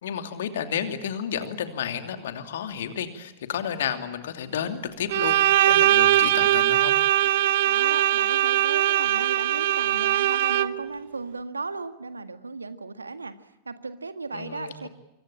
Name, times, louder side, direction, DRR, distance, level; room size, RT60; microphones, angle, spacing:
voice 1, 0.0-6.9 14.3-14.9, left 8 dB, 60° left, 8 dB, 2.8 m, -31 dB
Bowed string instrument, 5.1-10.9, right 14 dB, 55° right, 1.0 m, -21 dB
voice 2, 7.6-13.3 13.6-14.9, right 3 dB, 80° right, 11 dB, 1.7 m, -35 dB
25.0 x 24.5 x 8.7 m, 0.95 s
figure-of-eight pair, 90°, 0 cm